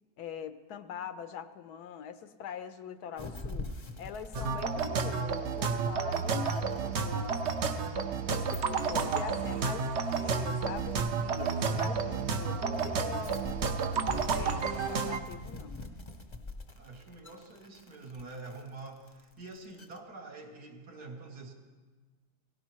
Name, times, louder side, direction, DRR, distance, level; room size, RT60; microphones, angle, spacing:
voice 1, 0.2-7.5 8.2-9.9 10.2-13.4 14.0-15.8, left 8 dB, 75° left, 11 dB, 1.2 m, -43 dB
sound 1, 3.2-20.0, left 2 dB, 25° left, 0.6 m, -43 dB
sound 2, 4.3-15.2, right 5 dB, 55° right, 0.8 m, -31 dB
voice 2, 11.6-12.3 16.7-21.5, right 3 dB, 70° right, 1 dB, 2.0 m, -46 dB
17.5 x 17.0 x 3.1 m, 1.4 s
omnidirectional pair, 1.7 m